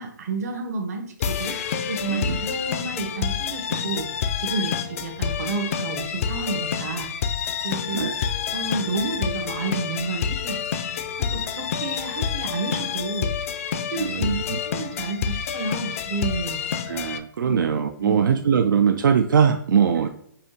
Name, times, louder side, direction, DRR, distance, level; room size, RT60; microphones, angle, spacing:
voice 1, 0.0-1.6 1.9-4.1 4.4-7.1 7.6-8.1 8.5-10.6 11.2-13.3 13.9-14.4 14.6-16.6 17.4-17.6 18.0-18.4, right 3 dB, 50° right, 6 dB, 0.9 m, -30 dB
sound 1, 1.2-17.2, left 7 dB, 45° left, 0.4 m, -28 dB
voice 2, 14.0-14.4 16.9-20.1, right 7 dB, 80° right, 7 dB, 0.4 m, -21 dB
5.4 x 2.9 x 2.8 m, 0.68 s
hypercardioid pair, 150°, 11 cm